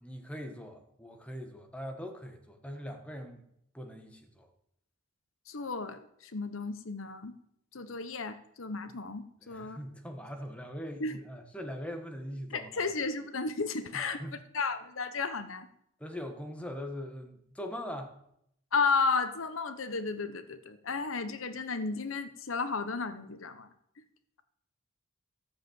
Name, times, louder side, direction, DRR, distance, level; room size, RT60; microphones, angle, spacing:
voice 1, 0.0-3.4 3.7-4.5 9.5-12.7 13.9-14.3 16.0-18.1, equal, 5° left, 4 dB, 1.4 m, -41 dB
voice 2, 5.5-7.3 7.7-9.8 11.0-11.2 12.5-14.2 14.5-15.7 18.7-23.7, left 4 dB, 75° left, 11 dB, 1.0 m, -33 dB
14.0 x 7.3 x 8.0 m, 0.75 s
head